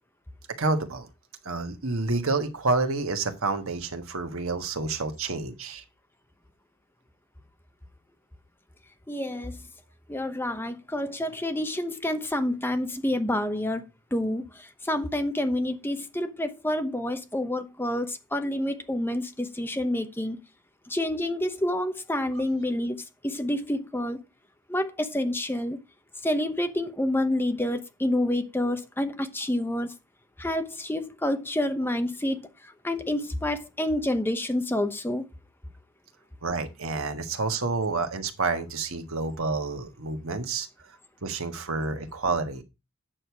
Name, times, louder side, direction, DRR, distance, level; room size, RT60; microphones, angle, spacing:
voice 1, 0.6-1.1 1.4-5.8 36.4-40.7 41.2-42.6, right 3 dB, 70° right, 1.4 m, -29 dB
voice 2, 9.1-9.6 10.1-13.8 14.1-20.4 20.9-24.2 24.7-25.8 26.2-29.9 30.4-32.5 32.8-35.2, left 1 dB, 10° left, 0.9 m, -28 dB
8.9 x 6.6 x 4.6 m
head